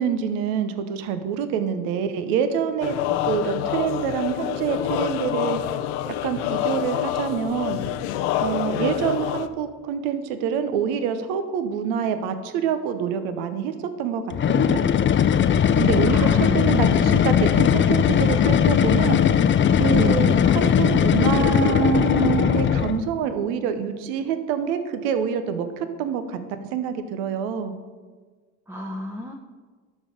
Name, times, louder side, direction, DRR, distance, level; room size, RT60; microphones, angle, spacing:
voice 1, 0.0-2.9 3.2-5.6 6.0-7.8 8.4-14.8 15.7-16.3 16.5-19.5 19.7-27.7, right 7 dB, 80° right, 9 dB, 0.8 m, -26 dB
sound 1, 2.8-9.5, left 12 dB, 75° left, 0.6 m, -27 dB
sound 2, 14.3-23.1, left 8 dB, 30° left, 0.5 m, -19 dB
voice 2, 16.1-17.5 19.9-20.4 28.7-29.3, left 1 dB, 5° right, 3 dB, 0.8 m, -33 dB
12.0 x 4.3 x 5.1 m, 1.4 s
supercardioid pair, 80°, 39 cm